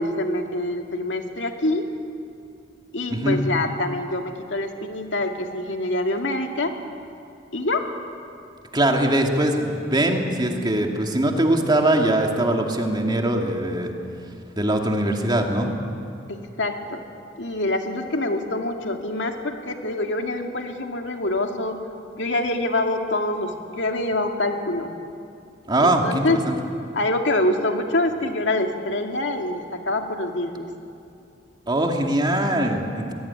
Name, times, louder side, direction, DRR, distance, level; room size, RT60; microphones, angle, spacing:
voice 1, 0.0-1.9 2.9-6.7 7.5-7.9 16.3-17.0 17.4-21.8 22.2-24.9 25.8-26.4 26.9-30.7, left 2 dB, 75° left, 3 dB, 2.3 m, -25 dB
voice 2, 8.7-13.9 14.6-15.7 25.7-26.5 31.7-33.1, right 1 dB, 25° right, 2 dB, 2.5 m, -21 dB
22.5 x 20.5 x 9.8 m, 2.5 s
head